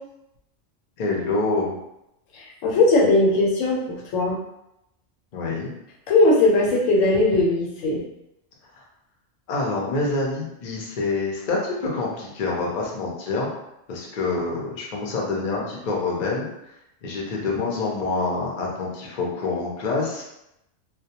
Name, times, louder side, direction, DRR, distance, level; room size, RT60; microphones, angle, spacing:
voice 1, 1.0-1.8 5.3-5.7 9.5-13.5 13.9-16.5 17.0-20.3, left 3 dB, 50° left, -2 dB, 0.5 m, -26 dB
voice 2, 2.3-4.4 6.1-8.0, left 2 dB, 90° left, -1 dB, 1.0 m, -19 dB
2.2 x 2.1 x 2.8 m, 0.83 s
omnidirectional pair, 1.3 m